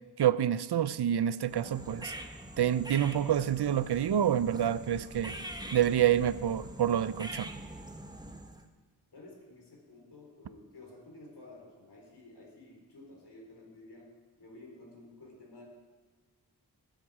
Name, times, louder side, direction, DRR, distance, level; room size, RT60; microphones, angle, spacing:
voice 1, 0.2-2.1 2.6-5.4 5.7-7.5, right 10 dB, 85° right, 16 dB, 0.6 m, -27 dB
sound 1, 1.4-8.7, right 1 dB, 10° right, 1.1 m, -44 dB
voice 2, 9.1-15.6, left 2 dB, 90° left, 0 dB, 3.9 m, -52 dB
20.0 x 9.0 x 4.9 m, 1.4 s
wide cardioid pair, 70°, 39 cm